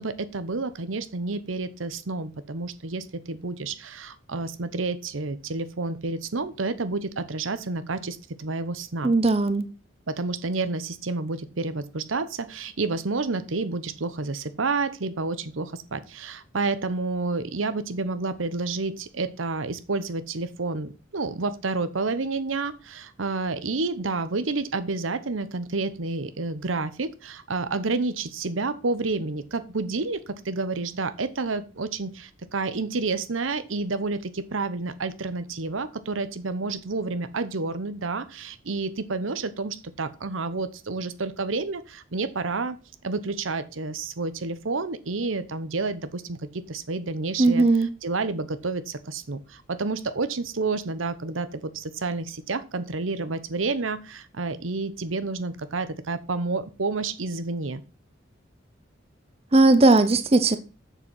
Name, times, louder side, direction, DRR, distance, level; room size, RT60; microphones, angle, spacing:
voice 1, 0.0-9.1 10.1-42.8 43.0-57.8, right 3 dB, 90° right, 0.9 m, -30 dB
voice 2, 9.0-9.6 47.4-47.9 59.5-60.6, right 2 dB, 30° right, 0.6 m, -18 dB
7.2 x 7.0 x 5.6 m
head